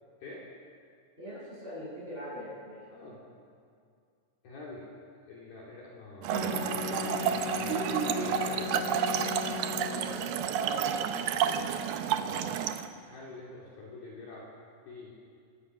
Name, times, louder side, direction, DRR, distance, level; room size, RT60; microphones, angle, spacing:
voice 1, 1.2-2.9 9.8-11.8, equal, 10° right, -7 dB, 7.7 m, -43 dB
voice 2, 2.9-3.2 4.4-4.9 5.3-8.9 12.2-12.4 13.1-14.5 14.9-15.2, left 2 dB, 55° left, -4 dB, 4.1 m, -46 dB
Trickle dribble / Fill (with liquid), 6.2-12.9, right 8 dB, 80° right, 2.3 m, -30 dB
Wind instrument woodwind instrument, 6.3-10.5, left 18 dB, 80° left, 2.8 m, -38 dB
24.0 x 20.5 x 6.1 m, 2.3 s
omnidirectional pair, 5.6 m